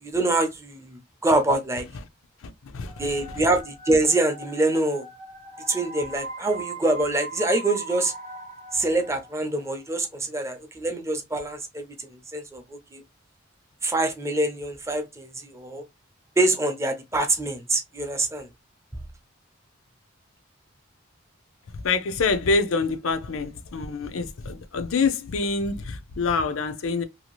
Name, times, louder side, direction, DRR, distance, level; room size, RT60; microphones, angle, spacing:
voice 1, 0.0-1.9 3.0-5.1 5.7-8.1 8.7-13.0 13.8-15.8 16.4-18.5, right 2 dB, 15° right, 0.5 m, -25 dB
voice 2, 2.4-3.4 21.7-27.0, left 4 dB, 85° left, 0.5 m, -26 dB
sound 1, 2.8-9.7, right 2 dB, 35° right, 0.8 m, -39 dB
2.7 x 2.3 x 3.0 m
head